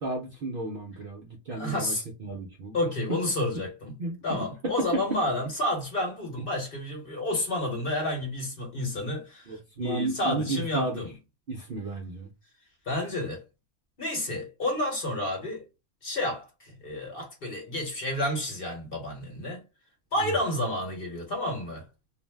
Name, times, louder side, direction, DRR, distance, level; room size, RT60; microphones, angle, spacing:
voice 1, 0.0-1.9 2.2-2.8 4.0-4.2 4.6-4.7 9.5-11.0 11.5-12.3 20.2-20.3, right 2 dB, 55° right, 0.6 m, -33 dB
voice 2, 1.5-2.0 2.7-4.0 4.2-11.1 12.9-13.4 14.0-15.6 16.0-19.6 20.1-21.8, left 1 dB, 45° left, 1.1 m, -30 dB
2.5 x 2.0 x 3.2 m
omnidirectional pair, 1.5 m